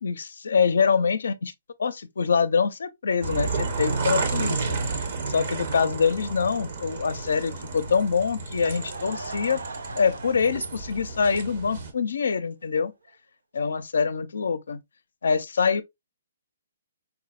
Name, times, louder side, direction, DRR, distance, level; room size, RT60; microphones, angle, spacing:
voice 1, 0.0-1.5 1.8-4.8 5.3-9.6 10.0-12.9 13.5-14.8 15.2-15.8, left 5 dB, 75° left, 0.4 m, -25 dB
sound 1, 3.2-11.9, right 4 dB, 55° right, 0.8 m, -31 dB
Laughter / Crowd, 8.4-11.8 12.2-12.3 12.8-12.9 13.1-13.2, right 3 dB, 85° right, 0.4 m, -41 dB
4.5 x 2.0 x 2.3 m
hypercardioid pair, 145°, 0 cm